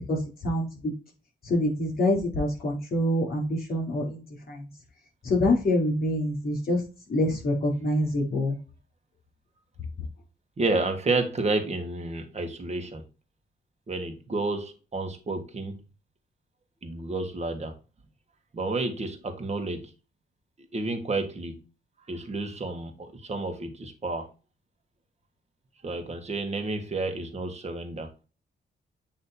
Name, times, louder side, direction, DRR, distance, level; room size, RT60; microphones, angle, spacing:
voice 1, 1.4-4.2 4.5-4.7 5.2-6.8 7.1-8.5, left 1 dB, 55° left, 4.2 m, -25 dB
voice 2, 10.6-13.0 13.9-15.8 16.8-17.7 18.5-19.9 20.7-21.6 22.1-24.3 25.8-28.1, right 2 dB, 40° right, 1.6 m, -30 dB
8.2 x 3.2 x 4.3 m
cardioid pair, 100°, 18 cm